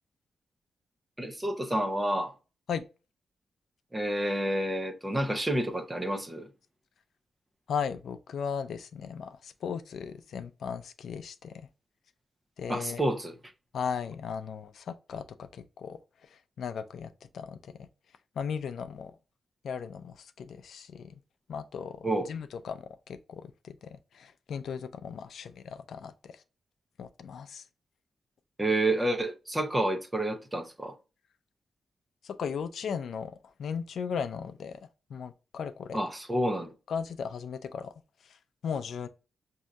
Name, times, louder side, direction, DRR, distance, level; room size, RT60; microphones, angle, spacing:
voice 1, 1.2-2.3 3.9-6.5 12.7-13.3 22.0-22.3 28.6-30.9 35.9-36.7, right 1 dB, 10° right, 0.6 m, -29 dB
voice 2, 7.7-11.7 12.6-13.0 13.7-16.0 16.3-17.9 18.4-19.2 19.6-21.2 21.5-26.3 27.0-27.6 32.2-34.8 35.1-36.0 36.9-37.9 38.6-39.1, left 6 dB, 70° left, 0.4 m, -37 dB
6.2 x 2.7 x 2.3 m
wide cardioid pair, 160°, 0 cm